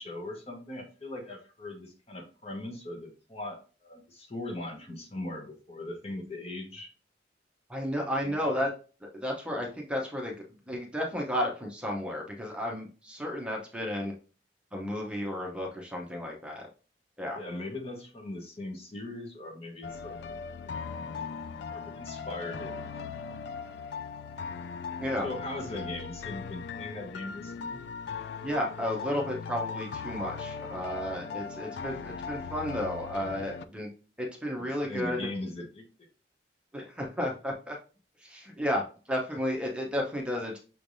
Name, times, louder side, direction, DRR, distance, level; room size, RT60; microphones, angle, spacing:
voice 1, 0.0-6.9 8.2-8.5 17.3-20.4 20.6-20.7 21.7-22.8 25.2-27.8 34.6-36.1, left 2 dB, 35° left, 2 dB, 0.9 m, -40 dB
voice 2, 7.7-8.7 9.1-10.3 10.7-14.1 14.7-16.7 17.2-17.4 25.0-25.3 28.4-33.9 34.2-35.3 36.7-37.8 38.2-40.6, equal, 5° right, -1 dB, 0.7 m, -33 dB
sound 1, 19.8-33.7, left 5 dB, 65° left, 0.3 m, -39 dB
6.1 x 3.3 x 2.6 m, 0.36 s
head